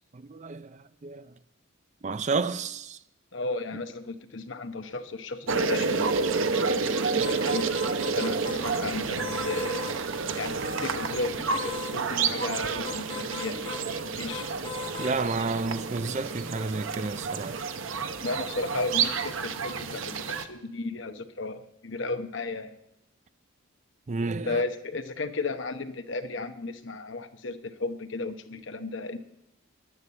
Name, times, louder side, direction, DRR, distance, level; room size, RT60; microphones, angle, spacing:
voice 1, 0.1-1.3 2.0-3.0 15.0-17.6 24.1-24.6, right 4 dB, 35° right, 0.4 m, -31 dB
voice 2, 3.3-7.7 8.1-14.5 18.2-22.8 24.5-29.2, left 3 dB, 65° left, 0.9 m, -34 dB
sound 1, 5.5-20.4, right 4 dB, 75° right, 0.8 m, -30 dB
sound 2, 7.2-8.8 9.2-10.0 11.5-12.0 12.8-13.9 14.3-15.2, left 5 dB, 25° left, 1.6 m, -39 dB
11.0 x 9.7 x 8.2 m
head